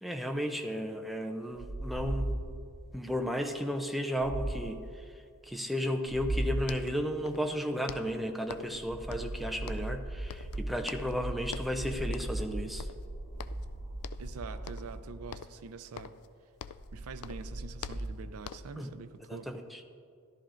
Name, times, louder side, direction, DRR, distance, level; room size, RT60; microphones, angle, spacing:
voice 1, 0.0-2.3 2.9-5.0 5.4-12.9 18.8-18.9 19.3-19.8, equal, ahead, 0.5 m, -34 dB
sound 1, 1.5-2.8 4.2-4.8 6.1-6.8 8.7-15.4 16.8-18.1, right 1 dB, 25° left, 2.9 m, -37 dB
sound 2, 6.3-6.4 6.6-7.6 7.9-8.8 9.1-10.0 10.3-11.2 11.5-11.8 12.1-12.5 12.8-13.7 14.0-14.3 14.7-15.0 15.3-16.9 17.2-18.8, left 8 dB, 80° left, 0.3 m, -46 dB
voice 2, 14.2-16.2 16.9-19.5, right 4 dB, 75° right, 0.5 m, -45 dB
14.0 x 11.5 x 2.5 m
head